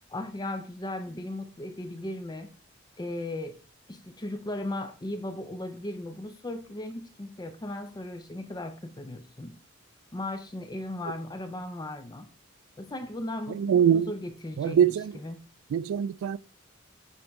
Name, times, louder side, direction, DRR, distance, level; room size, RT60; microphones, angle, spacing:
voice 1, 0.1-2.5 3.0-3.6 3.9-9.6 10.1-12.3 12.8-15.4, left 1 dB, 20° left, 0.5 m, -37 dB
voice 2, 13.6-14.1 14.6-15.1 15.7-16.4, right 8 dB, 90° right, 0.3 m, -23 dB
8.0 x 5.9 x 3.5 m
head